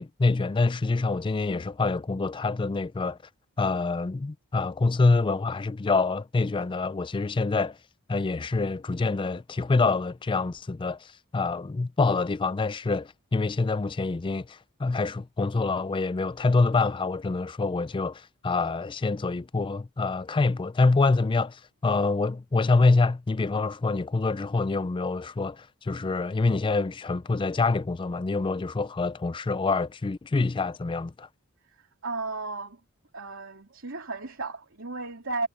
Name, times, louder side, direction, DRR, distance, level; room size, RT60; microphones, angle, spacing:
voice 1, 0.0-3.2 3.6-7.8 8.1-31.3, left 3 dB, 25° left, 0.4 m, -26 dB
voice 2, 31.6-32.8 33.1-35.5, right 3 dB, 65° right, 3.2 m, -34 dB
head